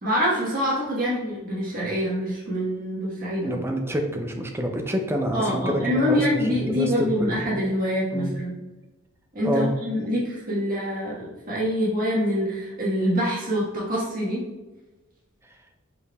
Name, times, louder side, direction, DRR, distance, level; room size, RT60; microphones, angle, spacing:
voice 1, 0.0-3.6 5.3-8.6 9.3-14.4, equal, 40° right, -7 dB, 1.4 m, -25 dB
voice 2, 3.4-7.6 8.1-8.4 9.4-9.7, equal, 10° right, 3 dB, 0.4 m, -27 dB
5.1 x 4.4 x 2.3 m, 1.1 s
head